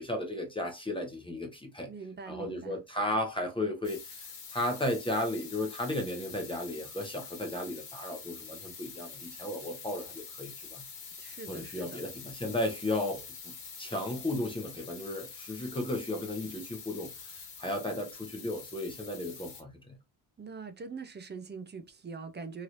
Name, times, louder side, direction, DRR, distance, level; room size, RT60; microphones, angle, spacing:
voice 1, 0.0-1.9 2.3-10.8 11.5-20.0, left 1 dB, 10° left, 0.7 m, -35 dB
voice 2, 1.8-2.8 11.2-12.1 20.4-22.6, right 5 dB, 25° right, 0.4 m, -43 dB
sound 1, 3.8-19.6, left 6 dB, 65° left, 1.4 m, -46 dB
3.1 x 2.8 x 2.5 m
wide cardioid pair, 175°, 45 cm